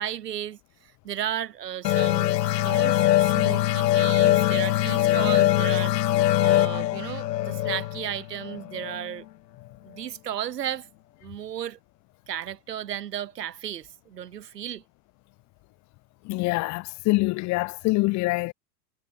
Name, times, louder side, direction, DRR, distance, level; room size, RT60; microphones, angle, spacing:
voice 1, 0.0-9.2 9.8-10.9 11.2-11.8 12.3-14.8, right 10 dB, 85° right, 4.7 m, -34 dB
sound 1, 1.8-9.1, left 14 dB, 85° left, 0.7 m, -22 dB
voice 2, 16.3-18.5, left 23 dB, 35° left, 0.7 m, -25 dB
hypercardioid pair, 105°, 47 cm